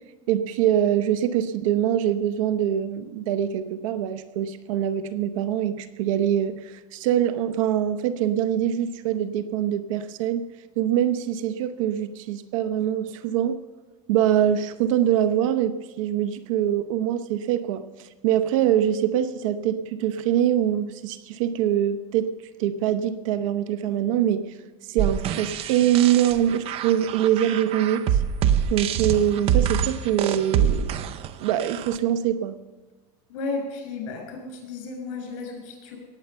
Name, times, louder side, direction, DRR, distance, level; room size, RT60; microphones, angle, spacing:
voice 1, 0.3-10.5 10.8-13.6 14.1-24.5 24.9-28.2 28.7-30.9 31.4-32.6, right 10 dB, 75° right, 13 dB, 0.8 m, -24 dB
sound 1, 25.0-32.0, right 8 dB, 35° right, 0.6 m, -25 dB
voice 2, 33.3-36.0, left 3 dB, 65° left, 3 dB, 5.5 m, -33 dB
18.0 x 7.9 x 6.9 m, 1.3 s
supercardioid pair, 145°, 17 cm